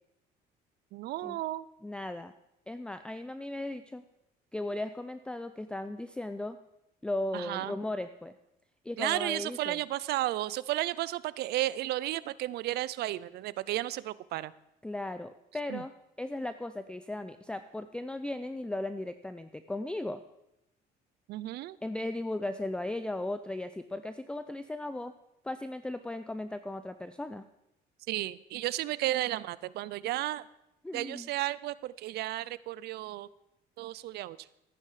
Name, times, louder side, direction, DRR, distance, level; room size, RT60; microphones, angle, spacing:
voice 1, 0.9-1.7 7.3-7.8 9.0-14.5 15.7-15.8 21.3-21.8 28.1-30.4 30.9-33.3 33.8-34.5, right 15 dB, 75° right, 19 dB, 0.5 m, -33 dB
voice 2, 1.8-2.3 2.7-4.0 4.5-6.6 7.0-8.3 8.8-9.8 14.8-15.9 16.2-20.2 21.8-25.1 25.4-27.4 30.8-31.3, left 1 dB, 5° left, 11 dB, 0.4 m, -36 dB
14.0 x 9.9 x 4.9 m, 0.86 s
cardioid pair, 110°, 17 cm